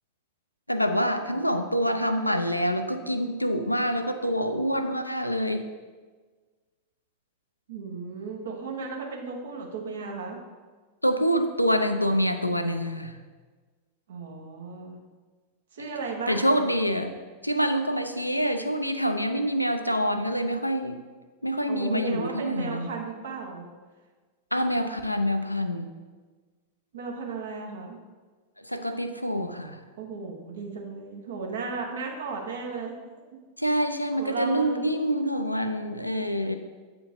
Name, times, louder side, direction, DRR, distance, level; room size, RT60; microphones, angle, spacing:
voice 1, 0.7-5.7 11.0-13.2 16.3-17.2 17.4-21.0 21.4-22.9 24.5-25.9 28.6-29.8 33.6-36.6, equal, 90° left, 7 dB, 0.4 m, -26 dB
voice 2, 7.7-10.4 14.1-15.0 15.7-16.6 21.7-23.7 26.9-28.0 30.0-32.9 34.1-35.2, right 4 dB, 60° right, 0 dB, 1.1 m, -35 dB
8.4 x 4.4 x 2.7 m, 1.4 s
figure-of-eight pair, 90°, 0 cm